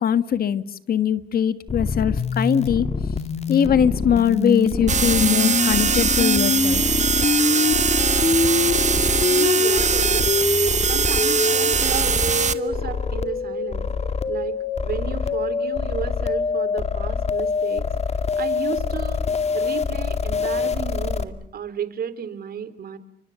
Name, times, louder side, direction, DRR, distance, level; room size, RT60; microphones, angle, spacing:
voice 1, 0.0-2.9 3.5-6.8, left 8 dB, 65° left, 13 dB, 1.7 m, -21 dB
sound 1, 1.7-21.2, left 5 dB, 40° left, 2.3 m, -24 dB
sound 2, 4.9-12.5, right 6 dB, 45° right, 1.6 m, -21 dB
voice 2, 9.2-10.3 10.9-13.8 14.3-17.8 18.4-19.2 19.5-23.0, right 8 dB, 65° right, 13 dB, 3.1 m, -32 dB
29.5 x 25.0 x 7.0 m, 0.67 s
cardioid pair, 85°, 17 cm